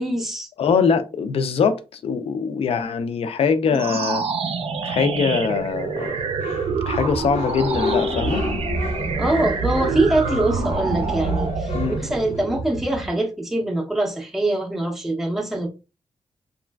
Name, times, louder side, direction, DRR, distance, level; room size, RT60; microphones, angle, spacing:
voice 1, 0.0-0.5 9.2-15.7, right 2 dB, 5° right, 0.5 m, -23 dB
voice 2, 0.6-4.2 4.8-6.1 6.9-8.4 11.7-12.0, left 6 dB, 65° left, 0.4 m, -22 dB
sound 1, 3.7-13.2, right 5 dB, 65° right, 0.5 m, -26 dB
sound 2, 5.0-12.4, left 4 dB, 85° left, 0.8 m, -31 dB
2.9 x 2.4 x 2.2 m
wide cardioid pair, 165°, 11 cm